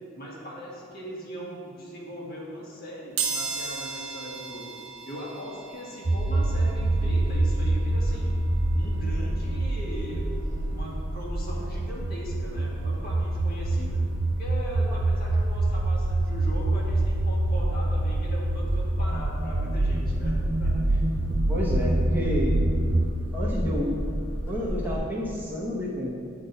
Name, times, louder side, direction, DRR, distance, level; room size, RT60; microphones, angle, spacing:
voice 1, 0.1-4.7 5.1-8.3 8.7-14.0 14.4-21.0, equal, 45° left, -4 dB, 1.6 m, -39 dB
sound 1, 3.2-13.8 14.3-14.4 15.5-15.7 15.9-18.0 18.4-21.0 21.4-21.5 21.9-22.0, right 5 dB, 60° right, 1.0 m, -39 dB
sound 2, 6.0-23.1, right 2 dB, 35° right, 0.4 m, -26 dB
sound 3, 6.6-25.0, equal, 30° left, 1.1 m, -35 dB
voice 2, 21.5-22.5 23.3-24.0 24.5-26.1, left 1 dB, 10° right, -7 dB, 1.0 m, -29 dB
9.3 x 3.9 x 5.3 m, 2.3 s
head